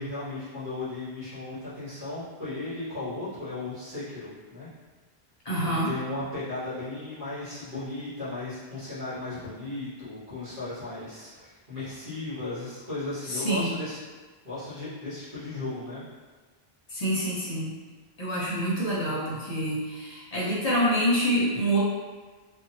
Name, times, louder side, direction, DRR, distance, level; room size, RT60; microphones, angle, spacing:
voice 1, 0.0-4.7 5.6-14.0 14.4-16.0, left 2 dB, 55° right, -12 dB, 1.5 m, -36 dB
voice 2, 5.4-5.9 13.3-13.7 16.9-17.7 18.2-21.8, right 1 dB, 40° left, -7 dB, 0.8 m, -26 dB
2.9 x 2.4 x 2.7 m, 1.4 s
omnidirectional pair, 1.1 m